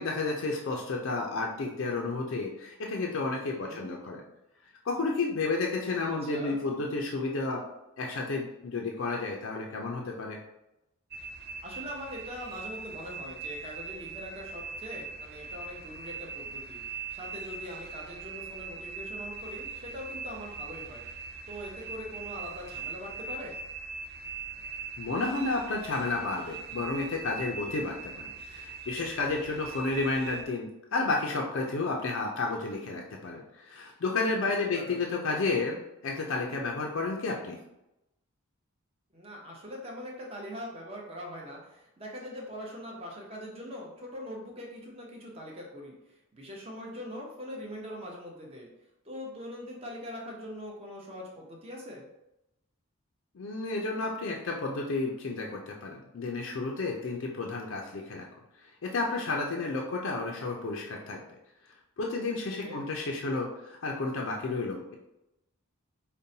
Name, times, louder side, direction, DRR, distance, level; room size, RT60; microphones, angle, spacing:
voice 1, 0.0-4.2 4.8-7.6 8.0-10.4 25.0-37.6 53.3-58.3 58.6-61.2 62.0-64.9, left 3 dB, 60° left, 0 dB, 0.4 m, -31 dB
voice 2, 6.1-6.6 11.6-16.8 17.1-21.0 21.5-23.6 34.7-35.0 39.1-45.9 46.3-48.7 49.0-52.0 62.6-62.8, equal, 25° right, -2 dB, 0.7 m, -42 dB
sound 1, 11.1-30.5, right 4 dB, 45° right, 0.3 m, -41 dB
5.2 x 2.1 x 2.7 m, 0.90 s
head